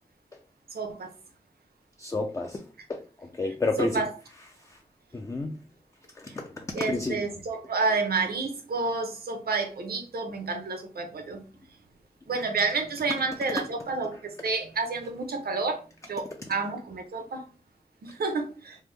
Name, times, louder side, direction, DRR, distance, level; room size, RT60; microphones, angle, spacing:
voice 1, 0.7-1.1 3.8-4.1 6.3-6.4 6.7-11.4 12.3-17.4 18.0-18.8, right 4 dB, 85° right, 0.7 m, -30 dB
voice 2, 2.0-2.6 2.9-4.0 4.6-4.8 5.1-5.6 6.2-7.2, left 2 dB, 20° left, 0.3 m, -31 dB
3.4 x 2.0 x 3.1 m
wide cardioid pair, 75°, 16 cm